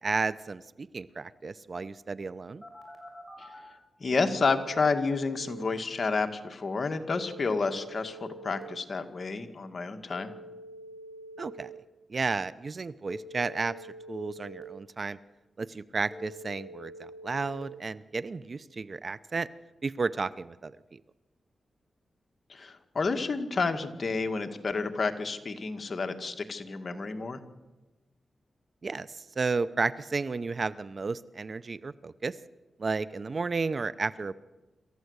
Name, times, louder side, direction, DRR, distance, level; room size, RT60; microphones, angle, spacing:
voice 1, 0.0-2.6 11.4-11.7 12.1-13.8 14.1-15.2 15.6-19.5 19.8-21.0 28.8-32.4 32.8-34.3, right 4 dB, 50° right, 17 dB, 0.7 m, -32 dB
Telephone, 2.6-3.6 4.1-5.6 7.1-8.6 10.1-11.6 13.1-14.6 16.1-17.6, equal, 5° right, 7.0 m, -46 dB
voice 2, 4.0-10.3 22.5-27.4, left 4 dB, 50° left, 6 dB, 2.0 m, -30 dB
26.5 x 14.0 x 8.1 m, 1.1 s
cardioid pair, 70°, 0 cm